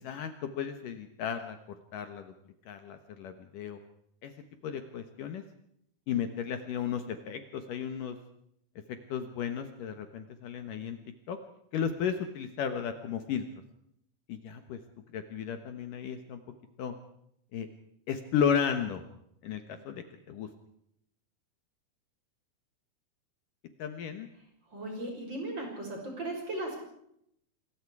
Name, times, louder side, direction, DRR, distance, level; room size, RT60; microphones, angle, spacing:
voice 1, 0.0-1.6 1.9-2.3 2.7-3.8 4.2-4.3 4.6-5.4 6.1-8.2 8.9-11.0 11.3-11.4 11.7-13.4 14.3-14.8 15.1-16.4 16.8-16.9 17.5-17.7 18.1-19.0 19.4-20.5 23.8-24.3, left 8 dB, 65° left, 8 dB, 2.7 m, -34 dB
voice 2, 24.7-26.9, right 1 dB, 30° right, 2 dB, 6.6 m, -37 dB
26.5 x 22.0 x 4.8 m, 0.74 s
omnidirectional pair, 4.4 m